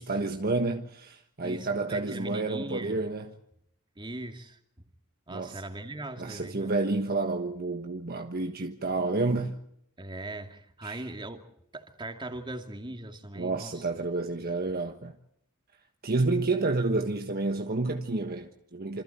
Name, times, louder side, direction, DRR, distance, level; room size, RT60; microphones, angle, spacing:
voice 1, 0.0-3.3 5.3-5.6 6.2-9.6 10.8-11.1 13.4-15.1 16.0-19.0, right 3 dB, 45° right, 1.4 m, -30 dB
voice 2, 1.4-3.0 4.0-4.6 5.3-6.7 10.0-11.5 11.7-13.9 14.4-14.8, right 2 dB, 20° right, 2.5 m, -40 dB
27.5 x 26.5 x 4.5 m
head